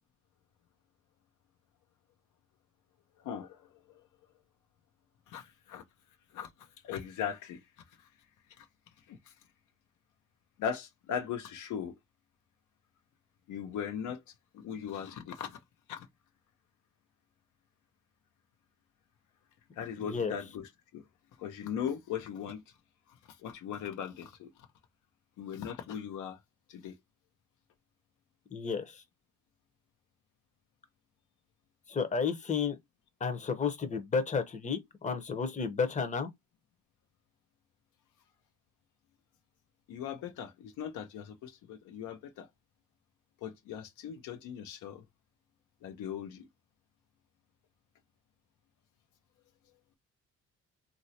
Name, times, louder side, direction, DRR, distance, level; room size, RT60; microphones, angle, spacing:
voice 1, 3.2-4.1 5.3-5.8 6.3-7.6 8.0-8.1 8.6-8.7 9.1-9.3 10.6-12.0 13.5-14.2 14.5-15.6 15.9-16.1 19.8-21.0 21.4-22.6 23.4-24.5 25.4-26.4 26.7-26.9 39.9-42.5 43.4-45.0 45.8-46.5, left 8 dB, 85° left, 0.7 m, -39 dB
voice 2, 20.0-20.3 28.5-29.0 31.9-32.8 33.2-36.3, left 5 dB, 25° left, 0.7 m, -32 dB
3.0 x 2.6 x 2.7 m
cardioid pair, 90°, 30 cm